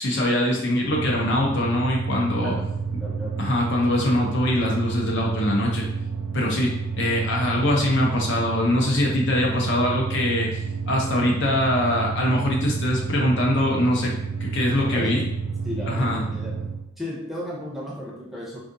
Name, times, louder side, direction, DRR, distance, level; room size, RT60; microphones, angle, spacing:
voice 1, 0.0-2.6 3.4-5.9 6.3-14.1 14.4-15.2 15.9-16.2, left 1 dB, 60° left, -1 dB, 0.7 m, -23 dB
sound 1, 0.8-16.9, right 5 dB, 70° right, 0.3 m, -30 dB
voice 2, 3.0-3.4 14.7-15.1 15.6-16.5 17.0-18.6, left 1 dB, ahead, -5 dB, 0.6 m, -34 dB
3.7 x 2.3 x 2.6 m, 0.80 s
head